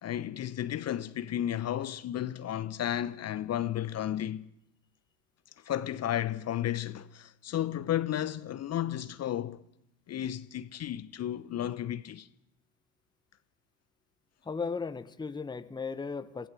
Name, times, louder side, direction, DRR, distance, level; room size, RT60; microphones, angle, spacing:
voice 1, 0.0-4.4 5.6-9.6 10.1-12.3, left 11 dB, 35° left, 1.0 m, -33 dB
voice 2, 14.4-16.5, left 5 dB, 10° left, 1.0 m, -36 dB
28.5 x 15.5 x 7.7 m
figure-of-eight pair, 70°, 47 cm